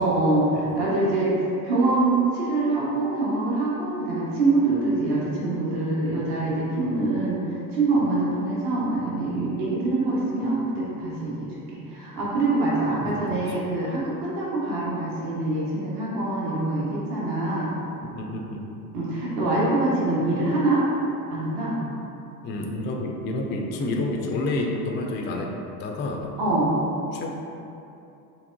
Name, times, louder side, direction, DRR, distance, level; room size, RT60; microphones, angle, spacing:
voice 1, 0.0-17.8 18.9-20.8 21.3-21.8 26.4-26.7, right 2 dB, 55° right, -7 dB, 1.2 m, -24 dB
voice 2, 13.0-13.4 18.0-18.7 22.4-25.5 25.8-26.3 27.1-27.3, left 2 dB, 25° left, 1 dB, 0.4 m, -29 dB
4.5 x 3.0 x 2.6 m, 2.9 s
hypercardioid pair, 75°, 48 cm